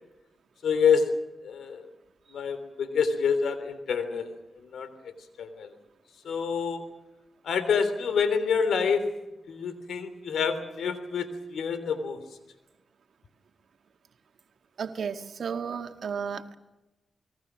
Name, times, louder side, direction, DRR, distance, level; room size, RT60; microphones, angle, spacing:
voice 1, 0.6-1.1 1.4-1.9 2.3-4.3 4.7-4.9 5.4-5.7 6.2-6.8 7.4-9.0 9.5-12.2, left 6 dB, 85° left, 11 dB, 3.4 m, -27 dB
voice 2, 14.8-16.5, right 6 dB, 70° right, 6 dB, 1.9 m, -33 dB
27.5 x 21.5 x 6.2 m, 1.0 s
cardioid pair, 65°, 0 cm